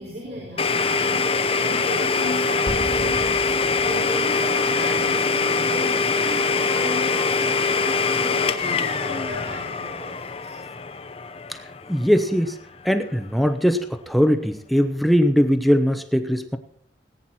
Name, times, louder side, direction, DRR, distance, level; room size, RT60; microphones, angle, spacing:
voice 1, 0.0-10.6, left 1 dB, 55° right, -3 dB, 4.8 m, -36 dB
Domestic sounds home sounds, 0.6-12.2, left 4 dB, 30° left, 0.6 m, -23 dB
sound 1, 2.7-4.6, equal, 25° right, 2.2 m, -36 dB
Bowed string instrument, 3.9-10.2, equal, 75° right, 5.5 m, -38 dB
voice 2, 11.9-12.6 12.8-16.6, equal, ahead, 8 dB, 0.8 m, -20 dB
18.5 x 9.4 x 4.3 m, 0.64 s
head